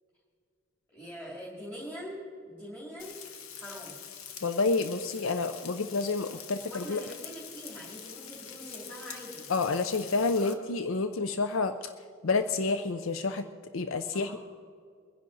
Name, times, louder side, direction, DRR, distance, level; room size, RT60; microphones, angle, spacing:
voice 1, 0.9-2.2 2.5-3.2 3.5-3.9 6.6-9.4 10.4-10.6 14.1-14.4, equal, 10° left, -6 dB, 2.7 m, -43 dB
Frying (food), 3.0-10.5, left 8 dB, 85° left, 1.2 m, -45 dB
voice 2, 4.4-7.0 9.5-11.7 12.2-13.4 13.7-14.4, left 3 dB, 65° left, 9 dB, 0.6 m, -29 dB
23.0 x 10.0 x 4.0 m, 2.1 s
head